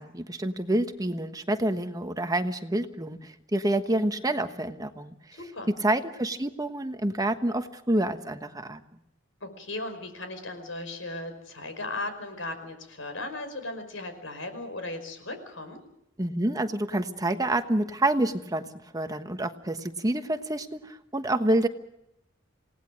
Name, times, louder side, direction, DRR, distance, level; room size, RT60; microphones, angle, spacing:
voice 1, 0.0-5.1 5.8-8.8 16.2-18.7 18.9-21.7, right 1 dB, 20° right, 8 dB, 1.2 m, -28 dB
voice 2, 5.3-5.7 9.4-15.8, left 2 dB, 85° left, 8 dB, 5.4 m, -37 dB
28.0 x 18.5 x 6.4 m, 0.82 s
head